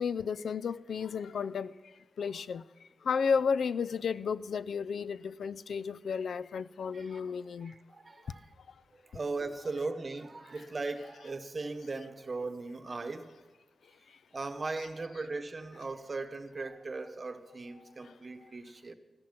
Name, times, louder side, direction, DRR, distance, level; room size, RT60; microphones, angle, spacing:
voice 1, 0.0-1.7 2.2-2.6 3.1-7.7, left 6 dB, 90° left, 0.4 m, -32 dB
voice 2, 7.6-8.5 8.9-13.3 14.3-18.9, right 3 dB, 35° right, 1.0 m, -38 dB
14.0 x 14.0 x 5.9 m
wide cardioid pair, 125°, 0 cm